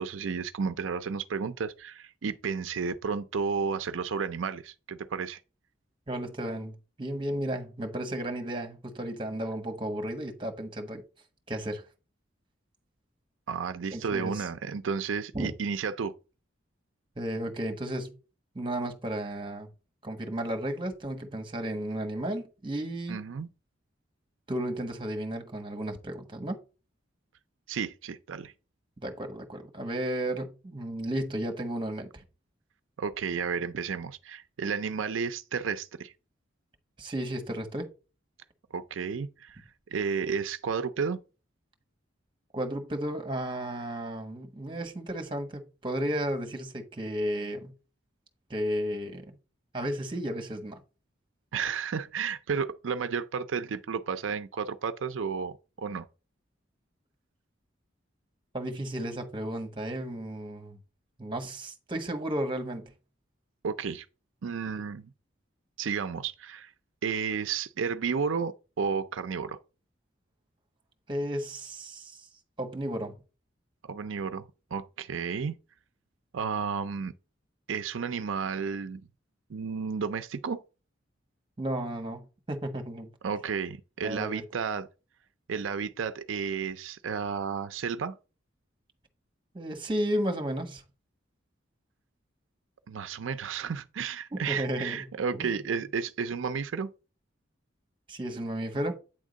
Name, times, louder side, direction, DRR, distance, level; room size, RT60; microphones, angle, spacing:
voice 1, 0.0-5.4 13.5-16.1 23.1-23.5 27.7-28.5 33.0-36.1 38.7-39.6 39.9-41.2 51.5-56.1 63.6-64.1 64.4-65.1 65.8-66.7 67.0-69.6 73.8-74.4 74.7-75.6 76.3-77.1 77.7-79.0 79.5-80.6 83.2-84.9 85.5-88.2 92.9-96.9, right 6 dB, 90° right, 0.5 m, -32 dB
voice 2, 6.1-11.0 11.5-11.8 13.9-14.5 15.3-15.5 17.2-18.1 18.5-19.7 20.0-23.2 24.5-26.6 29.0-32.2 37.0-37.9 42.5-47.7 48.5-49.2 49.7-50.8 58.5-60.8 61.2-62.9 71.1-72.3 72.6-73.1 81.6-83.1 84.0-84.4 89.5-90.8 94.3-95.6 98.1-99.0, right 1 dB, 25° right, 1.3 m, -33 dB
8.9 x 3.6 x 5.1 m
head